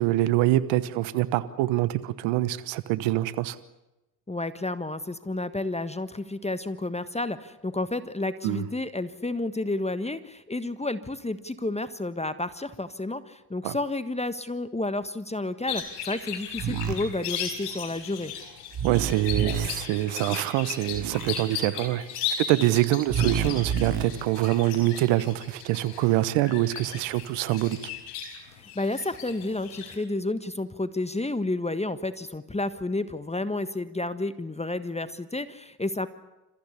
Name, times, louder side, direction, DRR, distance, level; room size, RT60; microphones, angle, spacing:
voice 1, 0.0-3.6 8.4-8.7 13.6-13.8 18.8-22.1 22.4-27.8, right 15 dB, 75° right, 14 dB, 1.2 m, -25 dB
voice 2, 4.3-18.3 28.6-36.1, left 2 dB, 15° left, 13 dB, 1.5 m, -31 dB
sound 1, 15.7-29.9, left 7 dB, 85° left, 4.7 m, -36 dB
sound 2, 16.6-16.9 18.7-19.7 20.9-21.3 23.1-24.0, right 8 dB, 60° right, 2.8 m, -28 dB
28.0 x 15.0 x 9.9 m, 0.96 s
hypercardioid pair, 55°, 45 cm